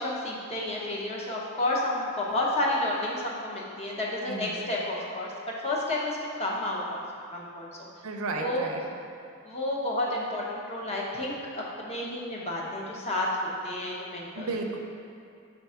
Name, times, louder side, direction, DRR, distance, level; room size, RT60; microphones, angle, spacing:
voice 1, 0.0-5.3 5.6-6.8 7.3-7.9 8.4-8.6 9.4-14.5, left 1 dB, 30° left, -4 dB, 0.9 m, -31 dB
voice 2, 4.3-4.7 8.0-8.8 14.4-14.8, right 3 dB, 85° right, 2 dB, 0.6 m, -33 dB
4.6 x 3.8 x 5.6 m, 2.4 s
head